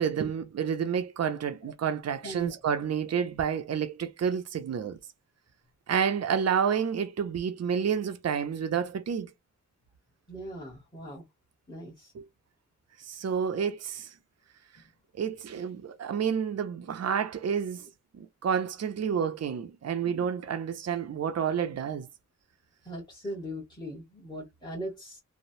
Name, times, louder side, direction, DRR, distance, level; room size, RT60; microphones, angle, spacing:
voice 1, 0.0-5.0 5.9-9.3 12.1-12.3 13.0-14.1 15.2-17.9 18.1-22.1, right 7 dB, 55° right, 0.5 m, -29 dB
voice 2, 2.2-2.6 10.3-11.3 11.7-12.1 22.8-25.2, right 1 dB, 15° left, 1.1 m, -39 dB
3.1 x 2.0 x 2.6 m
wide cardioid pair, 110°, 32 cm